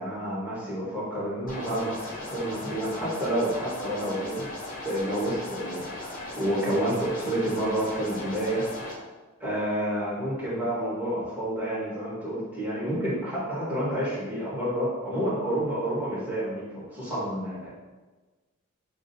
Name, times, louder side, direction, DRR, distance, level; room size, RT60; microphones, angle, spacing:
voice 1, 0.0-4.5 4.8-8.7 9.4-17.7, right 1 dB, 10° right, -9 dB, 1.2 m, -29 dB
sound 1, 1.5-8.9, left 1 dB, 40° left, 0.7 m, -38 dB
5.8 x 2.0 x 2.7 m, 1.3 s
head